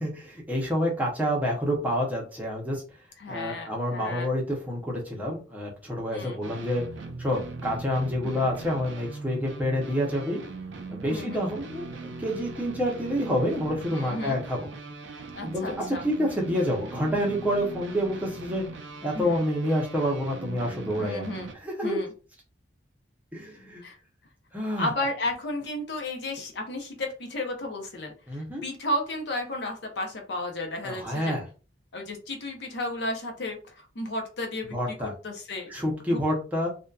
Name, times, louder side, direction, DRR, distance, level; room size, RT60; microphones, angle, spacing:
voice 1, 0.0-2.8 3.3-6.8 7.2-10.4 10.9-14.7 15.4-18.6 19.0-21.3 21.6-22.0 23.3-23.8 24.5-24.9 28.3-28.6 30.8-31.4 34.7-35.1 35.7-36.7, equal, 10° right, -2 dB, 0.6 m, -28 dB
voice 2, 3.2-4.3 6.1-6.4 8.2-8.5 11.1-11.4 13.9-14.4 15.3-16.0 19.1-19.4 21.0-21.5 21.8-22.1 23.8-24.0 24.8-28.1 28.6-31.3 31.9-35.7 36.1-36.2, left 1 dB, 60° left, 3 dB, 0.6 m, -33 dB
sound 1, 6.4-21.5, right 3 dB, 75° right, 0.4 m, -40 dB
2.6 x 2.2 x 2.3 m, 0.35 s
head